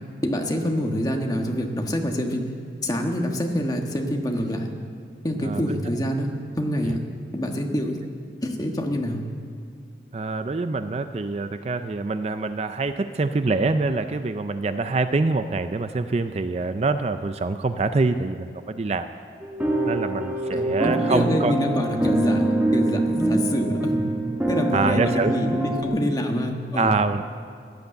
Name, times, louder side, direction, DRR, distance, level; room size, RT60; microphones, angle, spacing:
voice 1, 0.2-2.5 2.8-4.7 5.2-6.3 6.6-7.0 7.3-8.0 8.4-9.2 20.5-24.1 24.5-27.0, equal, 20° left, 2 dB, 1.4 m, -26 dB
voice 2, 5.4-5.8 6.8-7.0 7.8-7.9 10.1-19.1 19.9-21.5 24.7-25.3 26.8-27.2, right 3 dB, 35° right, 10 dB, 0.4 m, -25 dB
sound 1, 19.4-25.8, right 2 dB, 10° right, 1.2 m, -25 dB
15.5 x 10.5 x 7.9 m, 2.1 s
head